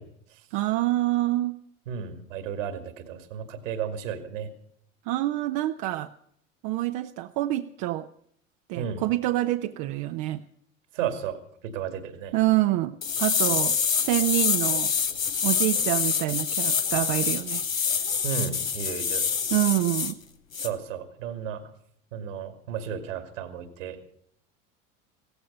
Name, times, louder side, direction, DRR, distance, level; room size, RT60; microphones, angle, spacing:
voice 1, 0.0-0.5 1.9-4.5 8.8-9.0 10.9-12.3 18.2-19.3 20.6-21.7 22.1-24.0, right 8 dB, 70° right, 9 dB, 2.5 m, -34 dB
voice 2, 0.5-1.6 5.1-6.1 6.6-8.1 8.7-10.4 12.3-14.9 15.4-17.6 19.5-20.1, right 16 dB, 50° right, 8 dB, 0.8 m, -26 dB
sound 1, 13.0-20.1 20.5-20.7, left 6 dB, 85° left, 1.2 m, -26 dB
17.0 x 15.0 x 5.3 m, 0.68 s
figure-of-eight pair, 75°, 39 cm